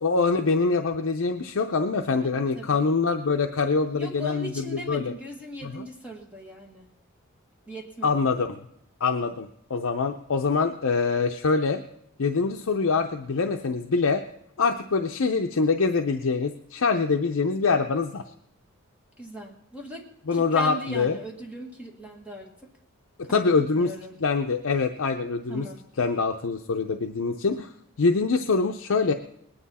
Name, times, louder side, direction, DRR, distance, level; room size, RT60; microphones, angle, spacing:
voice 1, 0.0-5.1 5.6-5.8 8.0-8.6 9.0-11.8 12.2-14.2 14.6-18.2 20.3-21.2 23.3-23.9 24.2-25.7 26.0-27.7 28.0-29.1, left 4 dB, 65° left, 5 dB, 0.6 m, -24 dB
voice 2, 2.3-2.8 3.9-6.9 7.7-8.3 19.2-20.0 20.3-22.5 23.3-23.5 23.7-24.2 25.5-25.8, equal, 5° right, 0 dB, 1.6 m, -39 dB
20.5 x 9.8 x 4.2 m, 0.76 s
head